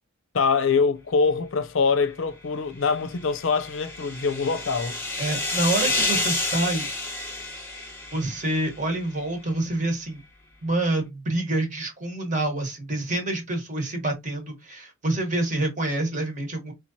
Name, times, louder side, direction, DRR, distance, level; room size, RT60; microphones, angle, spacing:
voice 1, 0.3-5.0, left 5 dB, 65° left, 0.5 m, -24 dB
sound 1, 3.2-8.7, left 2 dB, 10° left, 0.9 m, -29 dB
voice 2, 5.2-6.9 8.1-10.2 10.6-16.7, right 2 dB, 35° right, 1.1 m, -27 dB
3.8 x 3.0 x 2.7 m
head